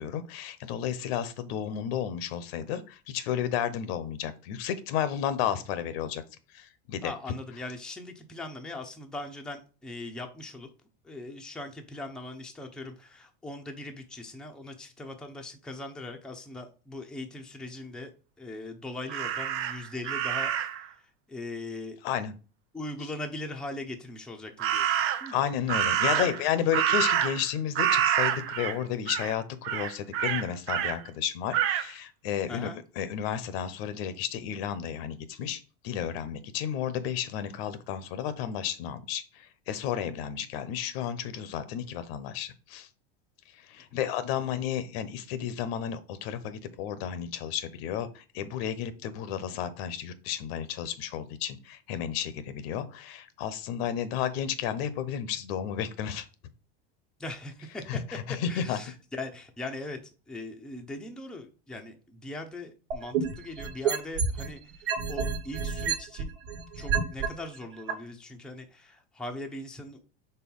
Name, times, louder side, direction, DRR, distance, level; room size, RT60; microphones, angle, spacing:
voice 1, 0.0-6.2 6.5-7.1 22.0-22.4 25.3-32.7 33.0-42.9 43.5-56.3 57.9-58.8, left 9 dB, 70° left, 14 dB, 0.9 m, -32 dB
voice 2, 7.0-10.7 11.0-18.1 18.4-20.9 21.3-22.0 22.7-25.4 26.2-26.3 26.6-26.7 32.5-32.8 44.4-44.5 57.2-57.9 58.5-60.0 60.3-66.3 66.7-70.0, left 2 dB, ahead, 2 dB, 0.6 m, -40 dB
Crow, 19.1-20.8 24.6-25.3 25.7-27.5 27.8-28.8 29.1-29.3 29.6-31.0 31.5-31.9, right 10 dB, 45° right, 0.7 m, -27 dB
sound 1, 62.9-64.5 64.9-67.3 67.9-68.0, right 6 dB, 70° right, 1.4 m, -28 dB
4.5 x 4.0 x 5.4 m, 0.35 s
supercardioid pair, 145°, 32 cm